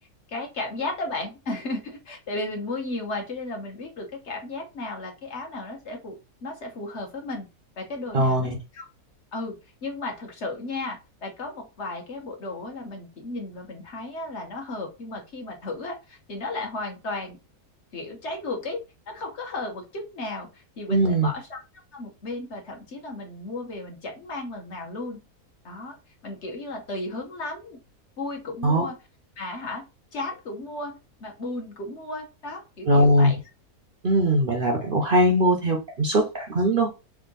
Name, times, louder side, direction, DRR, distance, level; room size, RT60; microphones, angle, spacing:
voice 1, 0.3-7.4 7.8-8.9 9.3-9.6 9.8-17.4 17.9-21.6 21.9-25.2 25.6-25.9 26.2-27.8 28.2-28.9 29.4-29.8 30.1-30.9 31.2-33.4, left 2 dB, 50° left, 2 dB, 1.4 m, -34 dB
voice 2, 8.1-8.6 20.9-21.3 28.6-28.8 32.9-33.3 34.0-36.9, right 1 dB, 45° right, 1 dB, 0.7 m, -20 dB
3.6 x 2.6 x 3.7 m, 0.28 s
omnidirectional pair, 1.6 m